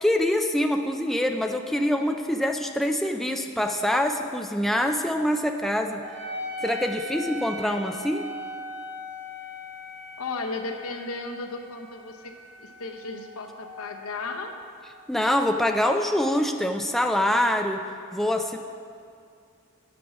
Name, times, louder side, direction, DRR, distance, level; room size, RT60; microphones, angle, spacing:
voice 1, 0.0-6.0 6.6-8.2 15.1-17.8 18.1-18.6, left 1 dB, ahead, 4 dB, 0.3 m, -25 dB
Wind instrument woodwind instrument, 6.0-14.9, left 1 dB, 55° right, 1.8 m, -39 dB
voice 2, 10.2-12.3 12.6-14.5, left 3 dB, 85° left, 4 dB, 0.8 m, -34 dB
8.5 x 6.0 x 6.1 m, 2.3 s
head